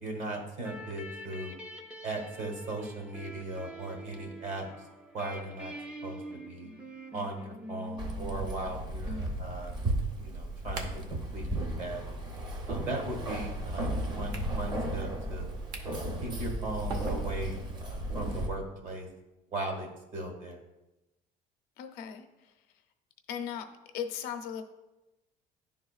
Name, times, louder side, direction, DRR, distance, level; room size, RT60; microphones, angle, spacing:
voice 1, 0.0-1.5 2.0-4.6 5.1-5.7 6.0-6.2 6.5-6.7 7.1-9.7 10.2-12.0 12.7-15.5 15.9-19.1 19.5-20.6, right 2 dB, 55° right, 2 dB, 1.4 m, -38 dB
sound 1, 0.6-9.1, equal, 10° right, 0.5 m, -45 dB
Keys jangling, 8.0-18.5, right 1 dB, 30° right, 0.8 m, -35 dB
voice 2, 9.0-9.4 21.8-22.5 23.3-23.6 23.9-24.6, left 8 dB, 80° left, 6 dB, 0.7 m, -38 dB
sound 2, 9.8-17.8, right 3 dB, 80° right, 0.9 m, -48 dB
11.0 x 3.6 x 2.4 m, 0.99 s
cardioid pair, 160°, 16 cm